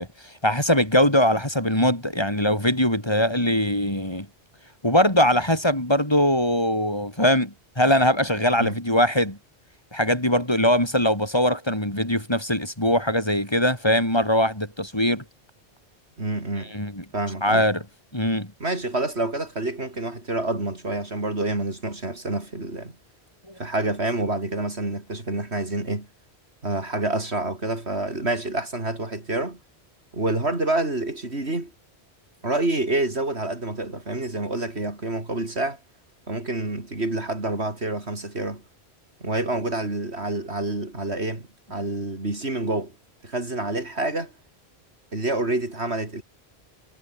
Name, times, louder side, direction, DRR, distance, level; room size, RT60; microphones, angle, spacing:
voice 1, 0.0-4.3 4.8-9.4 9.9-15.2 16.7-17.0 17.4-17.8 18.1-18.5, equal, 25° left, 4.7 m, -21 dB
voice 2, 16.2-16.7 17.1-17.7 18.6-23.0 23.6-26.1 26.6-29.6 30.1-31.7 32.4-35.8 36.3-38.6 39.2-42.9 43.2-44.3 45.1-46.2, right 2 dB, 80° right, 5.0 m, -27 dB
omnidirectional pair, 1.1 m